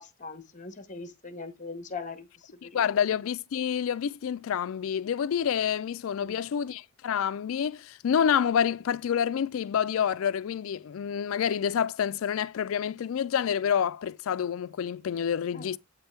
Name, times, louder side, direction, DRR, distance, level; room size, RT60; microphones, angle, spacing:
voice 1, 0.0-2.3 2.6-2.8 6.1-6.4 15.5-15.6, left 4 dB, 35° left, 0.9 m, -40 dB
voice 2, 2.6-15.8, left 8 dB, 70° left, 0.3 m, -28 dB
8.0 x 3.4 x 4.4 m
head